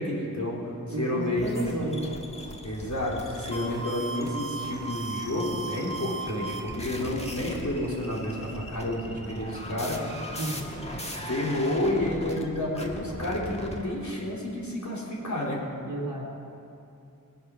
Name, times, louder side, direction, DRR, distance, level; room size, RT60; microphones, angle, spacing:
voice 1, 0.0-1.9 2.6-10.0 10.9-15.7, left 1 dB, 55° left, -4 dB, 3.4 m, -30 dB
voice 2, 0.9-2.2 10.4-10.7 15.9-16.3, right 2 dB, 90° right, -9 dB, 2.3 m, -32 dB
sound 1, 1.4-13.8, right 1 dB, 20° left, 1.6 m, -38 dB
21.0 x 8.0 x 6.1 m, 2.7 s
wide cardioid pair, 50°, 34 cm